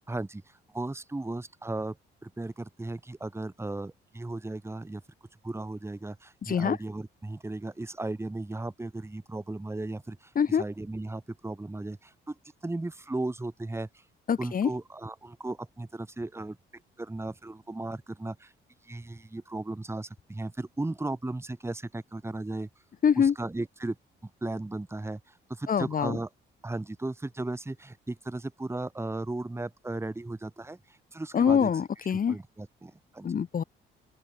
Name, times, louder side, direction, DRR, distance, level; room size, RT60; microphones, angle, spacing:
voice 1, 0.1-2.0 2.2-5.0 5.4-14.0 14.4-16.6 17.0-18.5 18.8-22.7 23.2-24.0 24.2-26.3 26.6-31.7 32.1-33.3, right 2 dB, 15° right, 2.5 m, -36 dB
voice 2, 14.3-14.7 23.0-23.3 25.7-26.2 31.3-32.4 33.2-33.6, left 7 dB, 45° left, 1.6 m, -24 dB
open air
cardioid pair, 90°, 20 cm